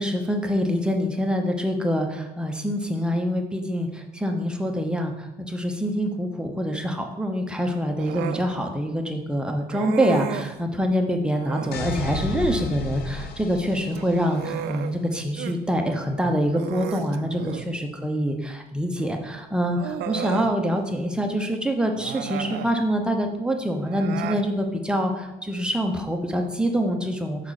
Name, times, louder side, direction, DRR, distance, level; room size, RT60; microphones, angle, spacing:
voice 1, 0.0-27.5, equal, 5° right, 3 dB, 0.8 m, -25 dB
Human voice, 8.0-8.5 9.7-10.6 11.3-11.9 13.8-15.6 15.9-16.0 16.5-17.8 19.0-19.1 19.7-20.5 21.9-22.8 23.8-24.5, right 10 dB, 75° right, 0.4 m, -33 dB
sound 1, 11.7-14.6, left 3 dB, 70° left, 0.7 m, -33 dB
6.0 x 4.9 x 4.1 m, 0.97 s
cardioid pair, 110°, 17 cm